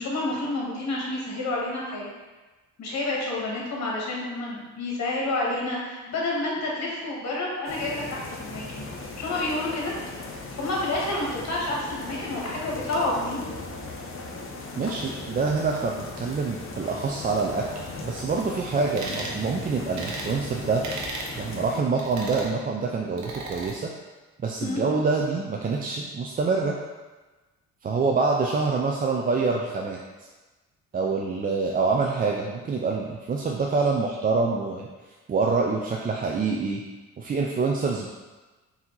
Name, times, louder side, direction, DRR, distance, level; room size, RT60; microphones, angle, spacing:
voice 1, 0.0-2.1 2.8-8.8 9.2-9.9 10.5-13.5 24.6-24.8, left 2 dB, 65° left, -3 dB, 1.4 m, -29 dB
sound 1, 7.7-21.8, left 3 dB, 45° left, 0.8 m, -38 dB
voice 2, 14.8-20.9 21.4-23.9 24.4-26.8 27.8-30.0 30.9-34.9 35.3-36.8 37.2-38.1, right 4 dB, 30° right, -1 dB, 0.4 m, -26 dB
sound 2, 19.0-19.4 20.0-20.3 20.8-21.3 22.0-22.5 23.2-23.7, right 2 dB, 70° right, 1.0 m, -35 dB
4.4 x 2.8 x 3.8 m, 1.2 s
cardioid pair, 90°, 30 cm